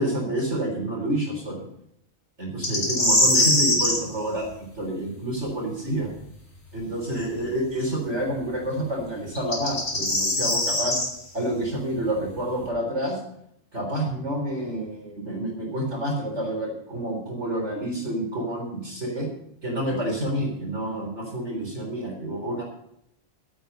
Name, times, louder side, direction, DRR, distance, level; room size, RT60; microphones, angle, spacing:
voice 1, 0.0-1.7 2.4-4.4 4.7-6.1 6.7-11.0 11.3-13.2 13.7-19.3 19.6-22.6, right 1 dB, 55° right, -1 dB, 4.4 m, -28 dB
sound 1, 2.6-4.0 7.1-7.2 9.4-11.1, left 1 dB, 75° left, 4.7 m, -22 dB
12.0 x 11.5 x 5.5 m, 0.75 s
omnidirectional pair, 1.4 m